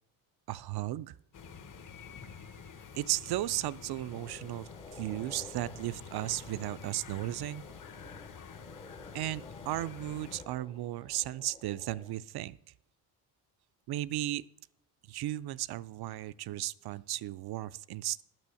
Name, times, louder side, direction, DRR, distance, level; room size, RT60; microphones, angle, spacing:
voice 1, 0.5-1.1 2.9-7.6 9.1-12.6 13.9-14.4 15.1-18.2, right 14 dB, 55° right, 18 dB, 0.5 m, -35 dB
sound 1, 1.3-10.5, left 6 dB, 40° left, 1.1 m, -48 dB
sound 2, 4.1-12.1, left 2 dB, 10° left, 0.6 m, -53 dB
9.2 x 6.2 x 6.9 m, 0.80 s
supercardioid pair, 65°, 46 cm